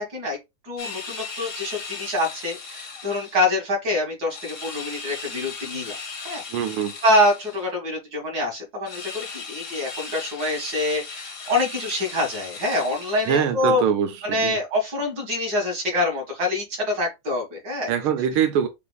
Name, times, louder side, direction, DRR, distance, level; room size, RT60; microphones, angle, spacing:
voice 1, 0.6-6.0 6.2-6.4 7.0-13.8 14.2-17.9, left 1 dB, 50° right, 2.2 m, -25 dB
sound 1, 0.8-3.4 4.3-7.7 8.8-13.5, left 4 dB, 45° left, 0.8 m, -37 dB
voice 2, 6.5-6.9 13.2-14.6 17.9-18.7, right 8 dB, 90° right, 1.5 m, -23 dB
6.9 x 2.6 x 2.3 m
omnidirectional pair, 2.3 m